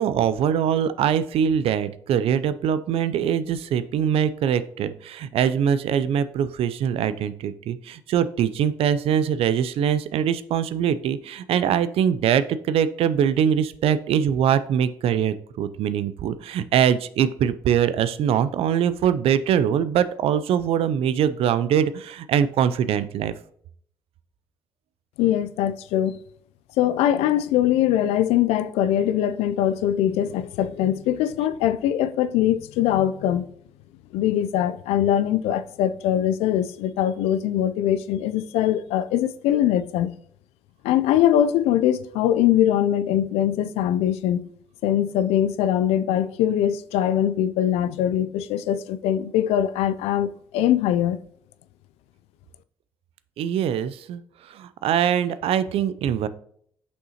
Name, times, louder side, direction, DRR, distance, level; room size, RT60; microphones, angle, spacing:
voice 1, 0.0-23.3 53.4-54.2 54.5-56.3, right 9 dB, 65° right, 0.4 m, -23 dB
voice 2, 25.2-26.2 26.8-33.4 34.1-40.1 40.8-44.4 44.8-51.2, left 11 dB, 80° left, 0.4 m, -22 dB
6.5 x 5.4 x 2.9 m
hypercardioid pair, 50°, 10 cm